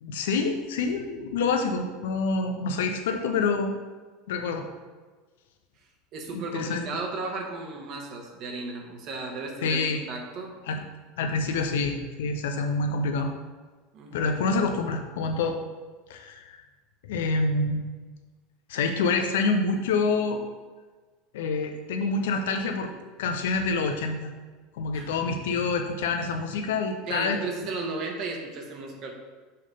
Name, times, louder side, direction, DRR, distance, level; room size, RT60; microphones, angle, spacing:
voice 1, 0.0-3.7 4.3-4.6 6.3-6.8 9.6-10.0 10.7-10.8 11.2-13.3 14.1-15.6 16.1-16.6 17.0-17.9 18.7-20.4 21.3-22.9 23.2-24.3 24.7-27.4, left 4 dB, 75° left, 4 dB, 0.5 m, -27 dB
voice 2, 6.1-10.5 13.9-14.2 24.9-25.1 27.1-29.1, right 3 dB, 55° right, 1 dB, 1.2 m, -35 dB
5.7 x 3.2 x 5.3 m, 1.3 s
hypercardioid pair, 95°, 0 cm